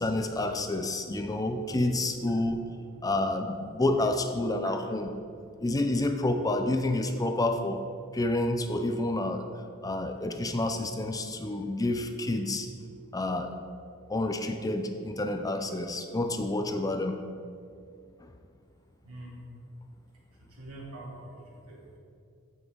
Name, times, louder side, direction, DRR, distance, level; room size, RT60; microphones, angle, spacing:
voice 1, 0.0-2.7 3.0-5.1 5.6-7.8 8.1-9.4 9.8-12.7 13.1-13.6 14.1-17.2 18.2-18.3, left 2 dB, 15° left, 6 dB, 0.5 m, -29 dB
voice 2, 19.0-19.4 20.3-22.0, right 2 dB, 75° right, -3 dB, 2.3 m, -45 dB
14.0 x 6.1 x 3.9 m, 2.3 s
head